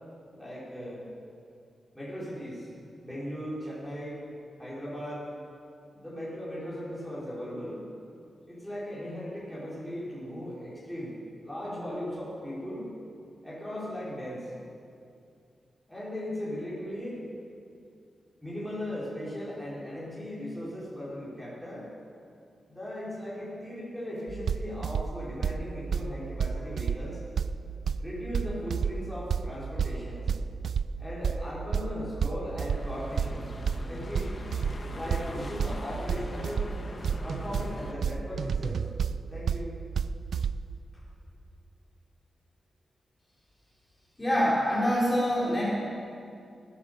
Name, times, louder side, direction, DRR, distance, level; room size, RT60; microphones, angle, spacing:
voice 1, 0.3-1.0 1.9-2.7 3.0-4.2 4.6-5.3 5.9-7.8 8.5-11.2 11.4-12.9 13.4-14.5 15.9-17.2 18.4-21.9 22.7-27.2 28.0-30.3 31.0-33.5 33.8-34.3 34.9-36.7 37.2-38.8 39.3-39.7 40.9-41.0, equal, ahead, -8 dB, 5.0 m, -37 dB
sound 1, 24.3-40.8, right 6 dB, 80° right, 0.4 m, -32 dB
sound 2, 32.7-37.9, left 2 dB, 40° left, 1.5 m, -41 dB
voice 2, 44.2-45.6, equal, 15° left, -7 dB, 5.0 m, -25 dB
19.5 x 10.5 x 6.9 m, 2.5 s
wide cardioid pair, 125°, 0 cm